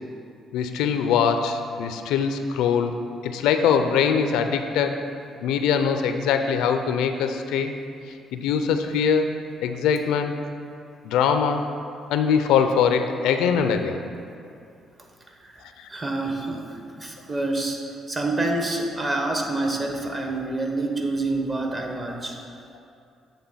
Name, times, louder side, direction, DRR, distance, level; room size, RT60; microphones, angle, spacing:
voice 1, 0.5-5.0 5.4-7.7 8.3-10.4 11.0-11.7 12.1-14.0 15.8-15.9, left 7 dB, 85° left, 7 dB, 0.4 m, -22 dB
voice 2, 15.4-22.4, right 2 dB, 30° right, 2 dB, 1.1 m, -27 dB
7.9 x 3.4 x 5.6 m, 2.5 s
supercardioid pair, 65°, 0 cm